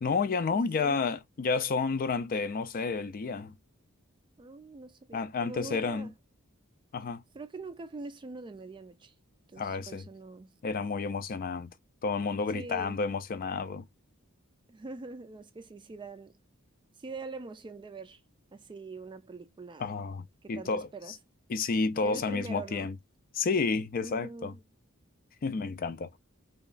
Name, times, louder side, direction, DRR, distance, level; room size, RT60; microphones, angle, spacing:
voice 1, 0.0-3.5 5.1-6.1 6.9-7.2 9.6-10.1 10.6-11.7 12.0-13.8 19.8-20.9 21.5-23.0 23.3-24.5 25.4-26.1, left 4 dB, 40° left, 0.4 m, -30 dB
voice 2, 0.5-1.1 4.4-6.1 7.3-9.1 9.5-10.6 12.5-13.0 14.7-16.4 17.0-18.2 18.5-19.9 20.4-21.1 22.0-22.9 24.0-24.6, right 3 dB, 20° right, 0.4 m, -43 dB
2.9 x 2.3 x 2.4 m
head